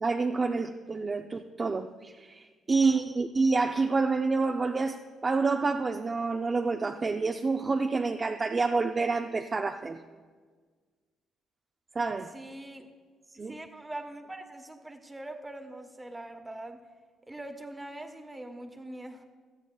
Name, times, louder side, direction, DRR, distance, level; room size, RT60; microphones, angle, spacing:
voice 1, 0.0-10.0 12.0-12.4 13.4-13.6, right 4 dB, 30° right, 0.5 m, -28 dB
voice 2, 12.3-12.9 13.4-16.8 17.3-19.2, right 1 dB, 15° right, 1.1 m, -42 dB
16.5 x 12.5 x 2.3 m
cardioid pair, 95°, 0 cm